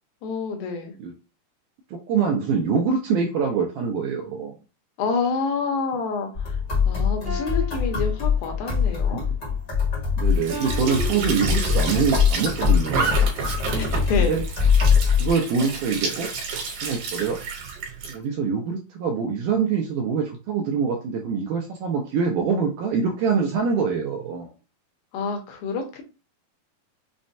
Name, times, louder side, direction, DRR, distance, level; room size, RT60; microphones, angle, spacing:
voice 1, 0.2-0.9 5.0-6.6 6.8-9.3 13.6-14.4 25.1-26.0, left 4 dB, 80° left, 4 dB, 2.5 m, -28 dB
voice 2, 1.9-4.6 9.1-9.3 10.2-13.2 14.2-14.5 15.2-16.3 16.8-17.4 18.0-24.5, right 5 dB, 85° right, 1 dB, 1.9 m, -24 dB
sound 1, 6.3-15.3, left 6 dB, 60° left, 1.0 m, -22 dB
sound 2, 7.2-8.8 10.5-12.0, right 2 dB, 40° right, 0.8 m, -38 dB
Squeak / Sink (filling or washing) / Trickle dribble, 10.3-18.2, right 5 dB, 70° right, 2.6 m, -30 dB
6.1 x 2.1 x 2.6 m, 0.32 s
omnidirectional pair, 4.3 m